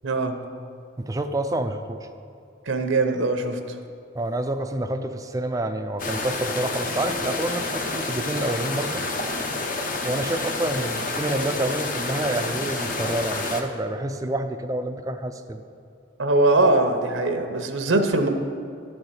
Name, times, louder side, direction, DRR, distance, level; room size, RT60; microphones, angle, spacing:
voice 1, 0.0-0.4 2.7-3.6 16.2-18.3, right 2 dB, 80° right, 6 dB, 0.8 m, -21 dB
voice 2, 1.0-2.1 4.1-9.0 10.0-15.6 17.9-18.0, right 1 dB, 15° right, 8 dB, 0.4 m, -28 dB
sound 1, 6.0-13.6, left 2 dB, 40° left, 0.8 m, -29 dB
12.0 x 4.4 x 8.0 m, 2.5 s
head